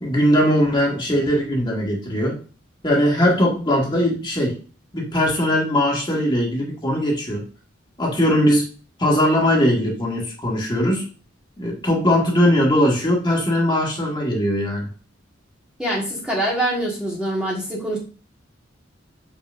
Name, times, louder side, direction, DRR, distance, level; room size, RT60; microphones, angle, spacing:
voice 1, 0.0-2.4 2.8-4.6 4.9-7.4 8.0-8.7 9.0-11.0 11.6-14.9, equal, 25° left, -2 dB, 1.8 m, -20 dB
voice 2, 15.8-18.0, right 1 dB, 5° right, -5 dB, 1.5 m, -24 dB
6.9 x 5.4 x 2.6 m, 0.37 s
head